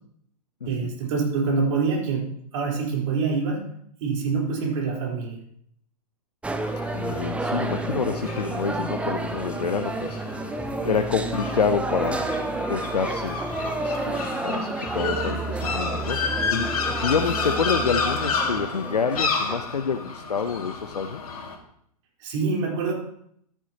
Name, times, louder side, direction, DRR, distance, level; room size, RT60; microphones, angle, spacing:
voice 1, 0.7-3.7 4.0-5.4 22.2-22.9, right 4 dB, 50° right, -1 dB, 3.9 m, -25 dB
sound 1, 6.4-19.8, right 2 dB, 5° right, 0.6 m, -30 dB
sound 2, 6.6-21.6, left 4 dB, 65° left, 2.2 m, -31 dB
voice 2, 6.9-10.6 10.9-12.3 12.6-13.4 13.8-21.4, left 5 dB, 85° left, 7 dB, 0.7 m, -28 dB
13.5 x 10.0 x 2.9 m, 0.68 s
figure-of-eight pair, 110°, 20 cm